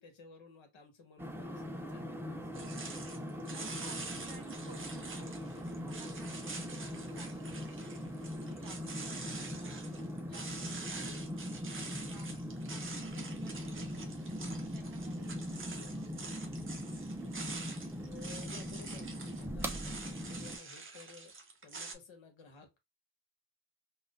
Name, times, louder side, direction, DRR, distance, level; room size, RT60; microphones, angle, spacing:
voice 1, 0.0-2.5 8.4-8.7 11.0-11.4 13.7-13.9 15.8-16.1 18.0-21.3 21.6-22.8, left 5 dB, 65° left, 1.3 m, -55 dB
sound 1, 1.2-20.6, equal, 5° right, 0.3 m, -41 dB
sound 2, 2.5-21.9, right 4 dB, 25° right, 0.7 m, -46 dB
voice 2, 3.5-9.8 10.3-11.3 11.7-12.3 12.7-16.0 16.8-16.9, right 4 dB, 45° right, 1.5 m, -58 dB
3.7 x 2.5 x 2.5 m
wide cardioid pair, 135°, 49 cm